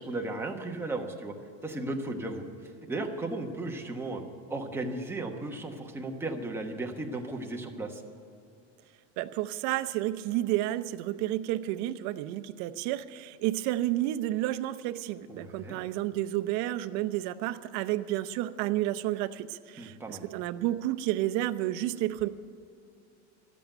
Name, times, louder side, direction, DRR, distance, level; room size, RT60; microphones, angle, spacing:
voice 1, 0.0-1.3 1.6-2.4 2.9-4.2 4.5-8.0 15.3-15.8 19.8-20.3, right 2 dB, 5° right, 1 dB, 1.1 m, -35 dB
voice 2, 9.2-22.3, right 14 dB, 55° right, 11 dB, 0.7 m, -31 dB
13.0 x 8.5 x 8.9 m, 2.6 s
cardioid pair, 150°, 34 cm